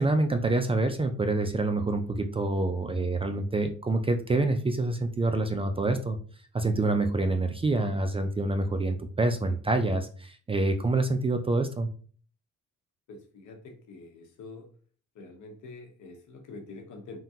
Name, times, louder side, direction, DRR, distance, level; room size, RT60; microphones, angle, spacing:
voice 1, 0.0-6.2 6.5-11.9, right 2 dB, 20° right, 6 dB, 0.3 m, -27 dB
voice 2, 13.1-14.7 15.1-17.2, left 3 dB, 75° left, 2 dB, 1.0 m, -46 dB
3.6 x 2.2 x 2.8 m, 0.44 s
cardioid pair, 90°, 30 cm